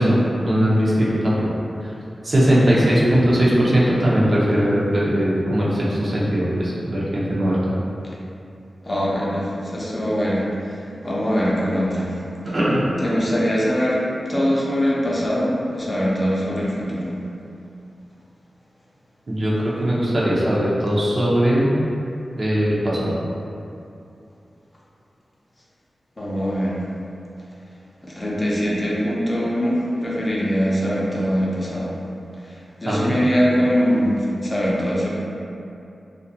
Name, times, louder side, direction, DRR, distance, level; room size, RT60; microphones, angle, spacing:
voice 1, 0.0-1.5 1.8-1.9 2.2-7.7 12.4-12.9 19.3-21.7 22.4-23.2 32.9-33.1, equal, 50° right, -7 dB, 0.5 m, -19 dB
voice 2, 8.8-10.8 11.0-12.2 13.0-14.0 14.3-17.1 26.2-26.8 28.0-32.0 32.4-35.1, equal, 25° left, -6 dB, 0.5 m, -22 dB
2.3 x 2.2 x 2.6 m, 2.6 s
wide cardioid pair, 80°, 0 cm